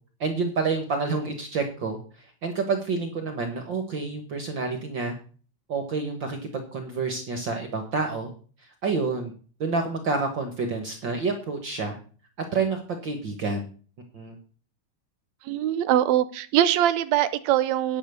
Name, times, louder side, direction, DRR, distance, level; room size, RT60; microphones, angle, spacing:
voice 1, 0.2-2.0 2.4-5.1 5.7-8.3 8.8-9.3 9.6-12.0 12.5-13.7 14.1-14.4, right 4 dB, 50° right, 1.6 m, -28 dB
voice 2, 15.5-18.0, right 12 dB, 80° right, 1.8 m, -22 dB
10.0 x 6.9 x 6.7 m
omnidirectional pair, 3.4 m